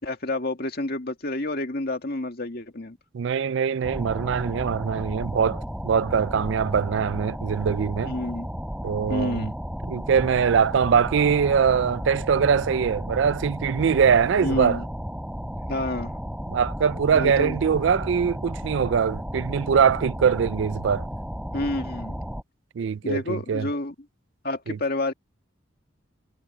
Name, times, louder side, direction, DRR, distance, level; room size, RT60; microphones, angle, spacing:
voice 1, 0.0-3.0 6.3-6.5 8.0-8.5 9.1-9.5 14.4-14.9 15.7-16.2 17.1-17.6 21.5-22.2 23.0-23.9 24.4-25.1, left 2 dB, 50° left, 2.2 m, -29 dB
voice 2, 3.1-8.1 8.8-9.5 9.9-14.8 16.5-21.0 22.8-23.7 24.7-24.8, right 6 dB, 60° right, 0.4 m, -22 dB
sound 1, 3.8-22.4, equal, 5° right, 3.6 m, -34 dB
head